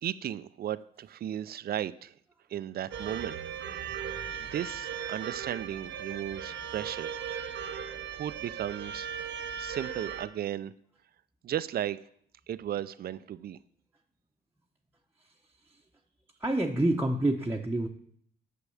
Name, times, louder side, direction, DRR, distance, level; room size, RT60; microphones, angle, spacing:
voice 1, 0.0-2.1 2.5-3.4 4.0-7.3 7.7-7.9 8.1-9.1 9.6-10.7 11.4-12.0 12.5-13.6, right 11 dB, 50° right, 16 dB, 0.5 m, -35 dB
sound 1, 2.9-10.3, right 8 dB, 65° right, 1.0 m, -37 dB
voice 2, 16.4-17.9, right 1 dB, 10° right, -1 dB, 0.9 m, -27 dB
8.2 x 6.1 x 7.0 m, 0.66 s
cardioid pair, 90°, 20 cm